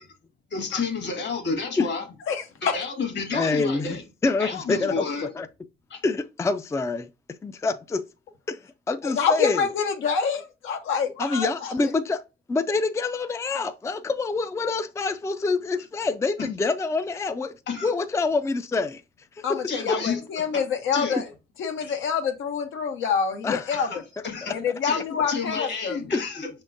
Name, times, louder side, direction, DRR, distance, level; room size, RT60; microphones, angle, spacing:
voice 1, 0.5-2.0 2.6-4.0 4.4-5.3 5.9-6.0 16.4-16.5 17.7-17.9 19.7-20.2 20.5-20.6 20.9-21.2 21.8-22.0 23.7-24.5 24.8-25.0 25.3-26.5, left 4 dB, 60° left, 1.7 m, -30 dB
voice 2, 2.3-2.8 9.0-11.7 19.4-21.2 21.6-23.9 24.5-26.0, left 6 dB, 80° left, 0.8 m, -26 dB
voice 3, 3.3-5.5 6.0-7.1 7.4-8.0 8.5-8.6 8.9-9.7 11.2-12.2 12.5-17.5 17.8-19.0 19.4-20.1 23.4-23.9 26.1-26.5, left 3 dB, 15° left, 0.4 m, -26 dB
5.6 x 3.6 x 2.6 m
cardioid pair, 90°, 20 cm